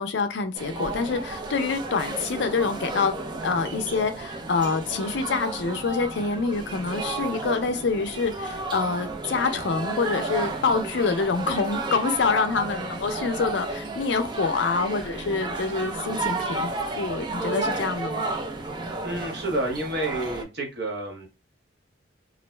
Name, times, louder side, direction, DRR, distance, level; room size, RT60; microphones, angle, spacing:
voice 1, 0.0-3.2 3.4-18.3, left 4 dB, 70° left, 0.4 m, -26 dB
sound 1, 0.5-20.4, right 2 dB, 25° right, 0.4 m, -32 dB
voice 2, 19.0-21.3, right 2 dB, 55° right, 0.9 m, -29 dB
2.5 x 2.0 x 3.1 m
head